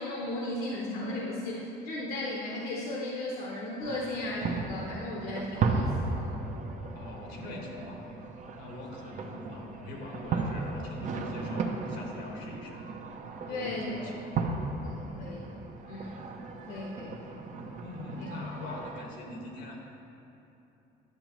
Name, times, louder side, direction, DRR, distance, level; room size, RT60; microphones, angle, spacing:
voice 1, 0.0-6.3 13.5-14.0 14.8-16.2 16.7-17.4 18.2-18.3, left 1 dB, 65° left, -3 dB, 1.0 m, -36 dB
sound 1, 3.8-19.0, right 4 dB, 45° right, 0.7 m, -35 dB
voice 2, 6.9-8.1 8.6-12.8 13.5-14.3 17.8-19.8, left 2 dB, 85° left, 0 dB, 1.5 m, -42 dB
10.5 x 7.1 x 3.0 m, 2.9 s
cardioid pair, 110°, 17 cm